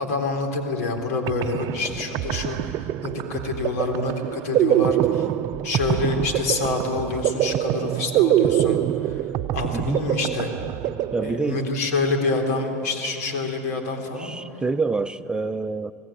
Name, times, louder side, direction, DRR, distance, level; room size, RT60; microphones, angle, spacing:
voice 1, 0.0-5.3 5.6-8.8 9.5-10.5 11.2-14.3, left 3 dB, 80° left, 4 dB, 3.6 m, -27 dB
sound 1, 1.0-1.1 1.3-11.9, right 13 dB, 50° right, 0.6 m, -25 dB
voice 2, 11.1-11.6 14.2-15.9, right 3 dB, 10° right, 10 dB, 0.7 m, -26 dB
27.5 x 18.5 x 8.9 m, 2.9 s
hypercardioid pair, 95°, 8 cm